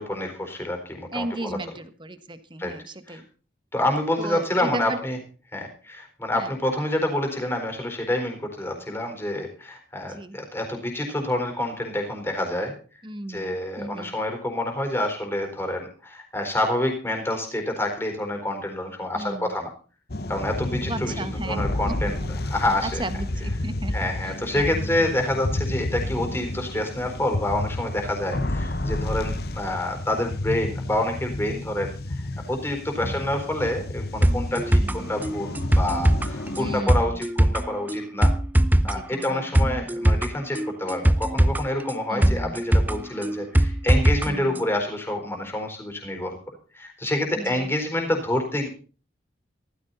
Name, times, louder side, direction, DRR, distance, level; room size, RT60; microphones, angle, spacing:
voice 1, 0.0-1.6 2.6-2.7 3.1-3.2 3.7-5.2 5.5-12.7 13.3-19.7 20.3-23.0 23.9-32.2 32.5-38.3 38.8-46.4 46.7-48.7, left 1 dB, 15° left, 3 dB, 4.2 m, -28 dB
voice 2, 1.1-3.2 4.2-5.0 6.3-6.5 10.0-10.4 13.0-14.1 19.2-19.5 20.9-21.9 22.2-22.3 23.0-24.8 33.0-33.3 34.8-35.1 36.6-37.2 38.9-39.7 42.1-42.6 44.3-44.6 47.4-47.7, right 2 dB, 25° right, 11 dB, 1.5 m, -35 dB
sound 1, 20.1-36.8, left 1 dB, 55° left, 1.2 m, -31 dB
sound 2, 34.2-44.3 44.6-44.7, right 1 dB, 10° right, 0.7 m, -21 dB
16.0 x 14.5 x 4.1 m, 0.38 s
head